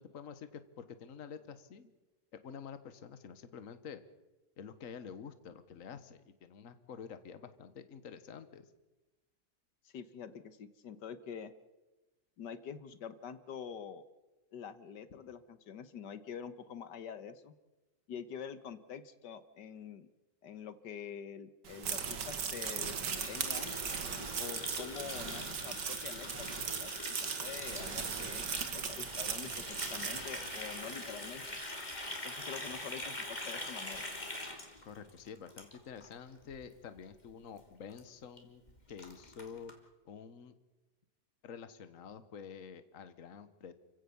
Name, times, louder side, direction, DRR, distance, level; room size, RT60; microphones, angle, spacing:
voice 1, 0.0-1.9 2.3-4.0 4.6-8.7 34.9-38.6 38.9-39.7 40.1-40.6 41.4-43.7, left 6 dB, 55° left, 12 dB, 1.6 m, -48 dB
voice 2, 9.9-11.5 12.4-14.0 14.5-17.5 18.1-20.1 20.4-23.7 24.4-26.5 26.7-28.4 28.7-31.4 32.2-34.0, left 7 dB, 85° left, 12 dB, 1.7 m, -46 dB
sound 1, 21.7-31.2, right 6 dB, 80° right, 2.2 m, -39 dB
Water tap faucet, 23.1-36.1 36.4-36.7 37.0-37.3 37.6-37.7 37.9-38.0 38.4-38.5 38.7-39.7, left 1 dB, 25° left, 3.1 m, -43 dB
29.5 x 16.0 x 7.1 m, 1.1 s
omnidirectional pair, 1.8 m